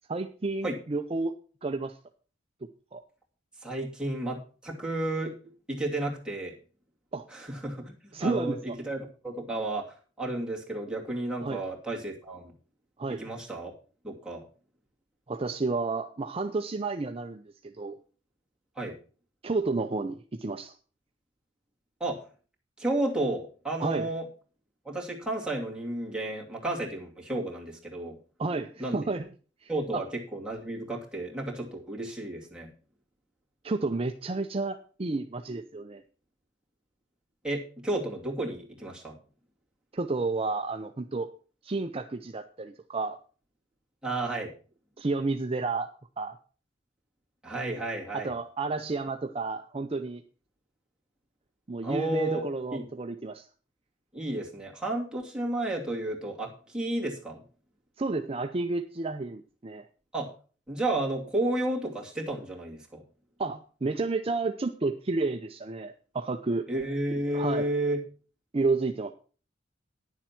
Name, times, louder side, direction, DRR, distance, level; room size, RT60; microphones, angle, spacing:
voice 1, 0.1-1.3 1.6-2.0 2.9-3.0 7.1-7.2 8.1-8.7 11.4-11.6 13.0-13.2 15.3-18.0 19.4-20.7 23.8-24.1 28.4-29.3 29.6-30.1 33.6-36.0 39.9-41.3 41.6-43.2 45.0-45.9 46.2-46.4 48.1-50.2 51.7-53.5 58.0-59.8 63.4-66.7 67.3-67.7 68.5-69.1, right 3 dB, 30° right, 6 dB, 0.6 m, -31 dB
voice 2, 3.6-5.3 5.7-6.5 7.3-7.9 8.2-9.0 9.2-9.9 10.2-12.5 13.2-13.7 14.0-14.4 18.8-18.9 22.0-22.2 22.8-24.2 24.8-28.2 28.8-29.0 29.7-32.7 37.4-39.2 44.0-44.5 47.4-48.3 51.8-52.8 54.1-57.4 60.1-60.3 60.7-63.0 66.7-68.0, right 1 dB, 5° right, -3 dB, 2.6 m, -32 dB
10.0 x 7.3 x 5.9 m, 0.39 s
head